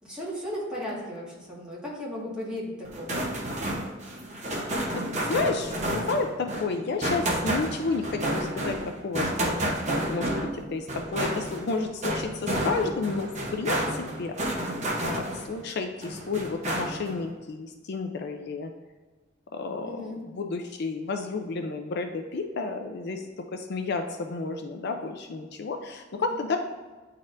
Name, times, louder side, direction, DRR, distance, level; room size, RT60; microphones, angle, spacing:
voice 1, 0.0-3.3 19.8-20.3 26.2-26.6, left 1 dB, 5° right, -7 dB, 1.7 m, -36 dB
sound 1, 2.8-15.6 16.0-17.2, right 1 dB, 35° right, 0.9 m, -30 dB
voice 2, 4.9-8.8 9.0-14.8 15.0-18.7 19.5-23.3 23.5-26.6, left 3 dB, 55° left, 6 dB, 0.4 m, -31 dB
9.6 x 4.1 x 2.6 m, 1.3 s
head